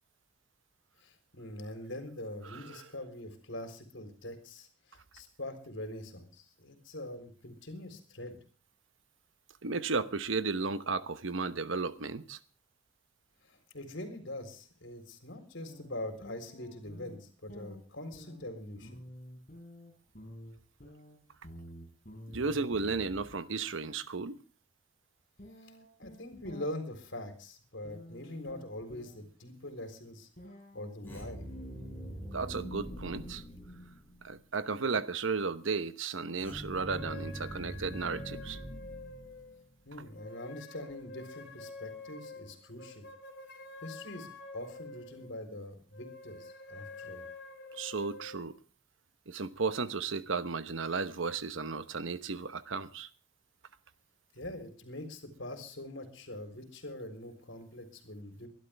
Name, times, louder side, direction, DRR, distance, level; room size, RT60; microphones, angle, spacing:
voice 1, 1.0-8.4 13.4-19.0 25.6-25.7 26.0-30.3 30.7-31.4 39.9-43.1 43.8-47.2 54.3-58.5, left 1 dB, 75° left, 3.9 m, -43 dB
voice 2, 2.5-2.8 9.6-12.4 22.3-24.4 32.3-33.4 34.2-38.6 47.7-48.6 49.3-53.1, right 4 dB, 85° right, 1.0 m, -34 dB
sound 1, 15.6-17.2 17.5-23.3 25.4-26.7 27.8-29.1 30.4-31.8, equal, 40° left, 7.7 m, -50 dB
sound 2, 31.0-34.4 36.4-39.6, equal, 10° left, 7.4 m, -43 dB
sound 3, 36.9-39.6 40.1-45.3 45.9-48.4, left 3 dB, 60° left, 2.9 m, -48 dB
23.5 x 12.0 x 3.5 m
head